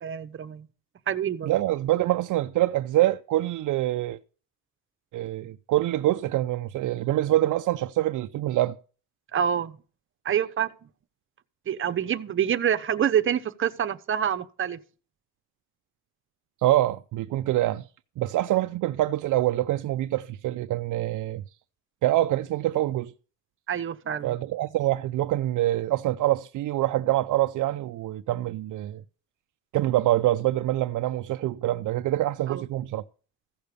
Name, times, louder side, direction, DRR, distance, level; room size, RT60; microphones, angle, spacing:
voice 1, 0.0-0.7 1.1-1.5 9.3-9.8 10.2-10.7 11.7-14.8 23.7-24.4 32.5-32.6, right 9 dB, 40° right, 0.9 m, -26 dB
voice 2, 1.4-4.2 5.1-8.8 16.6-17.9 18.2-21.4 22.0-23.1 24.2-29.0 29.7-33.0, right 15 dB, 65° right, 0.6 m, -25 dB
15.5 x 6.6 x 6.9 m
cardioid pair, 110°, 33 cm